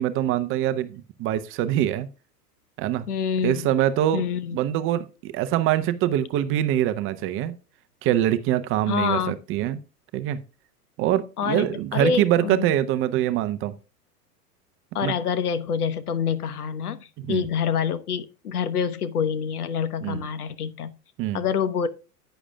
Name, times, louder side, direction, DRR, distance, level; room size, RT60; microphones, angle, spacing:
voice 1, 0.0-2.1 2.8-3.1 3.4-4.2 4.5-7.5 8.0-9.8 10.1-10.4 11.0-13.7 15.0-15.1 17.3-17.4 20.0-20.2 21.2-21.4, right 12 dB, 30° right, 0.6 m, -24 dB
voice 2, 3.1-3.7 4.1-4.6 8.9-9.3 11.4-12.7 14.9-20.9 21.3-21.9, left 7 dB, 70° left, 1.1 m, -26 dB
11.0 x 9.0 x 2.2 m
figure-of-eight pair, 95°, 47 cm